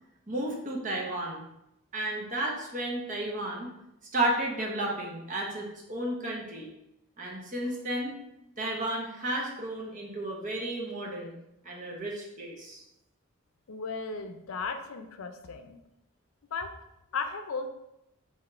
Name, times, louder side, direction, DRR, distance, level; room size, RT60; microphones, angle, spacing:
voice 1, 0.3-1.4 1.9-3.7 4.1-6.7 7.2-8.2 8.6-11.3 11.6-12.8, right 1 dB, 40° right, -2 dB, 1.0 m, -33 dB
voice 2, 13.7-15.8 16.5-16.7 17.1-17.7, left 4 dB, 85° left, 7 dB, 0.5 m, -35 dB
4.0 x 3.0 x 4.3 m, 0.85 s
head